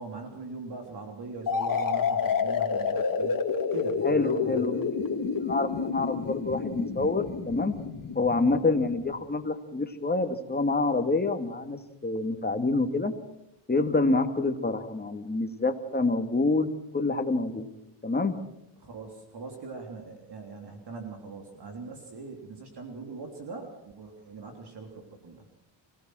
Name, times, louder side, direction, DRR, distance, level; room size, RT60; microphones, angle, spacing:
voice 1, 0.0-3.4 3.7-4.6 18.8-25.4, right 3 dB, 50° right, 3 dB, 3.4 m, -41 dB
sound 1, 1.5-9.1, left 6 dB, 40° left, 2.4 m, -29 dB
voice 2, 4.0-4.9 5.2-7.7 8.2-13.1 13.7-17.7 18.0-18.3, left 3 dB, 20° left, 6 dB, 2.2 m, -27 dB
25.5 x 17.0 x 6.3 m, 0.80 s
cardioid pair, 90°, 49 cm